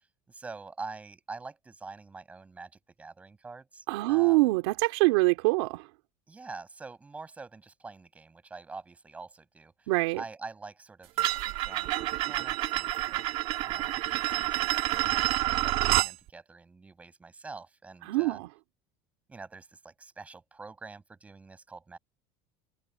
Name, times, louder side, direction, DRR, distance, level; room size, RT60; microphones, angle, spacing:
voice 1, 0.3-4.5 6.3-13.3 13.6-18.4 19.3-22.0, right 4 dB, 10° right, 7.6 m, -46 dB
voice 2, 3.9-5.9 9.9-10.2 18.1-18.5, right 24 dB, 85° right, 3.3 m, -24 dB
sound 1, 11.2-16.1, right 16 dB, 45° right, 1.7 m, -28 dB
cardioid pair, 175°, 13 cm